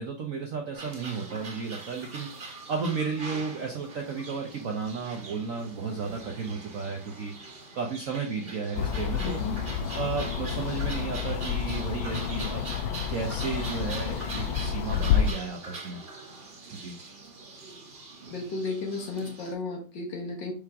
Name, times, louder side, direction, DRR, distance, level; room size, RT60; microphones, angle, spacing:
voice 1, 0.0-7.3 7.7-9.4 9.9-12.6 13.1-16.0 16.7-17.0, right 5 dB, 60° right, 2 dB, 0.8 m, -33 dB
sound 1, 0.7-19.5, right 3 dB, 35° right, 1.1 m, -43 dB
sound 2, 8.7-15.3, left 8 dB, 80° left, 1.4 m, -29 dB
voice 2, 9.2-9.6 18.3-20.5, left 3 dB, 60° left, 1 dB, 2.0 m, -34 dB
5.7 x 5.1 x 3.5 m, 0.38 s
omnidirectional pair, 2.2 m